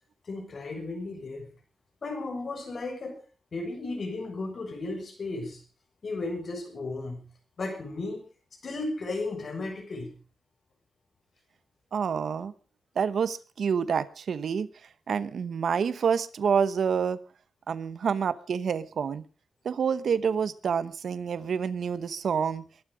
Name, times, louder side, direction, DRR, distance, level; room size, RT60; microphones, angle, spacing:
voice 1, 0.2-1.5 2.0-3.2 3.5-5.6 6.0-7.3 7.6-8.2 8.6-10.1, left 2 dB, 50° left, 6.5 m, -34 dB
voice 2, 11.9-12.5 13.0-14.7 15.1-17.2 17.7-19.2 19.6-22.6, right 6 dB, 75° right, 1.0 m, -28 dB
22.0 x 11.5 x 5.1 m
wide cardioid pair, 130°, 0 cm